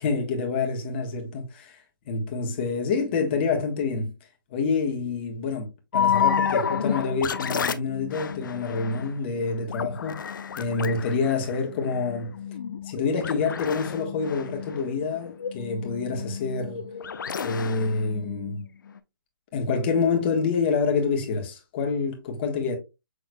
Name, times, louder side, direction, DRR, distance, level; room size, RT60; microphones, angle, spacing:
voice 1, 0.0-1.8 2.1-4.1 4.5-5.6 5.9-10.3 10.6-12.3 12.9-16.8 17.4-18.6 19.5-22.8, left 4 dB, 30° left, 1.4 m, -27 dB
sound 1, 5.9-19.0, left 7 dB, 60° left, 0.6 m, -30 dB
6.2 x 3.7 x 2.3 m
hypercardioid pair, 155°, 12 cm